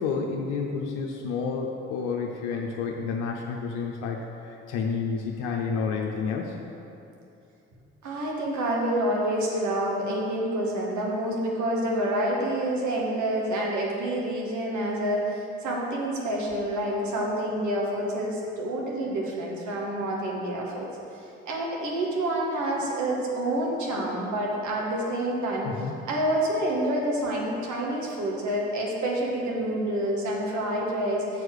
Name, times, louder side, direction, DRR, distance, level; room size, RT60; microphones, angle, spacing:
voice 1, 0.0-4.2 4.4-6.5 25.6-26.0, left 5 dB, 65° left, 0 dB, 0.7 m, -30 dB
voice 2, 8.0-20.9 21.2-31.4, right 1 dB, 55° right, -2 dB, 1.7 m, -28 dB
6.8 x 4.7 x 6.6 m, 2.7 s
hypercardioid pair, 45°, 35 cm